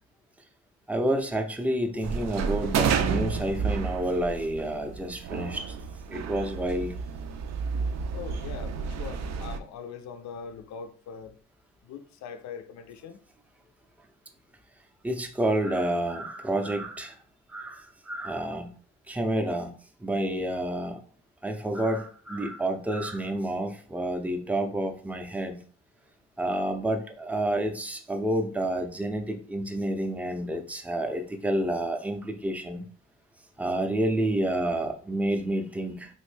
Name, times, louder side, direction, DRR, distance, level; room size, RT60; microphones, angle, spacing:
voice 1, 0.9-5.7 6.1-6.9 15.0-17.1 17.5-17.8 18.1-18.7 19.1-19.7 20.0-21.0 21.4-25.6 26.4-32.8 33.6-36.1, right 1 dB, 5° right, 4 dB, 0.5 m, -29 dB
sound 1, 2.0-9.6, right 6 dB, 60° right, 0.4 m, -31 dB
voice 2, 8.1-11.4 11.8-13.2, left 6 dB, 65° left, 9 dB, 0.5 m, -41 dB
3.0 x 2.6 x 3.2 m, 0.44 s
cardioid pair, 90°, 30 cm